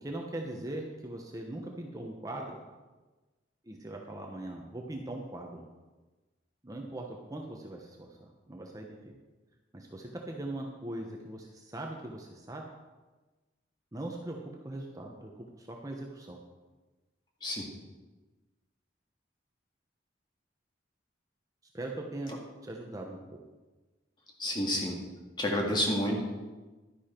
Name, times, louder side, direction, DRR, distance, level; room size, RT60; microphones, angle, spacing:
voice 1, 0.0-2.6 3.6-5.6 6.6-9.1 9.7-12.7 13.9-14.4 14.6-16.4 21.7-22.3 22.6-23.4, right 1 dB, 20° right, 1 dB, 0.9 m, -40 dB
voice 2, 24.4-25.0 25.4-26.2, left 1 dB, 25° left, 0 dB, 2.0 m, -29 dB
12.0 x 10.0 x 4.5 m, 1.2 s
head